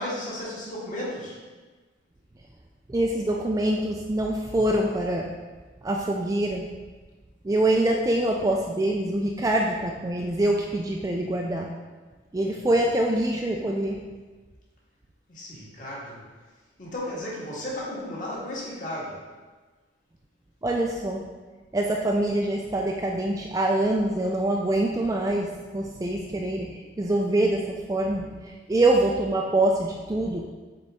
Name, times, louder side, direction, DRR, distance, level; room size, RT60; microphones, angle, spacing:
voice 1, 0.0-1.3 15.3-16.2 16.8-19.2, left 1 dB, 45° left, -6 dB, 1.6 m, -34 dB
voice 2, 2.9-5.3 5.8-6.7 7.4-11.7 12.3-14.0 20.6-21.3 21.7-30.5, right 1 dB, 20° right, 0 dB, 0.3 m, -25 dB
7.3 x 3.9 x 3.6 m, 1.3 s
head